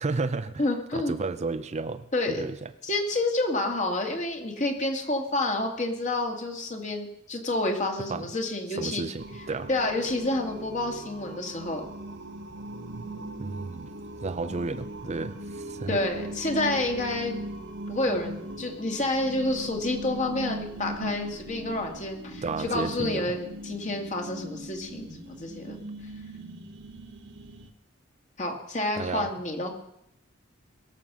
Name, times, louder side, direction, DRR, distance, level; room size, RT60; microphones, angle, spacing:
voice 1, 0.0-0.6 0.9-2.7 8.1-8.3 8.8-9.7 13.0-13.1 13.4-13.9 14.2-16.0 22.4-23.4 29.0-29.3, right 3 dB, 35° right, 10 dB, 0.5 m, -32 dB
voice 2, 0.6-1.2 2.1-2.5 2.8-9.0 9.7-11.8 14.4-14.5 15.9-17.4 17.9-25.8 28.4-29.7, left 2 dB, 35° left, 2 dB, 2.3 m, -29 dB
sound 1, 9.2-27.7, right 1 dB, 60° right, 1.3 m, -39 dB
21.5 x 7.4 x 6.2 m, 0.81 s
head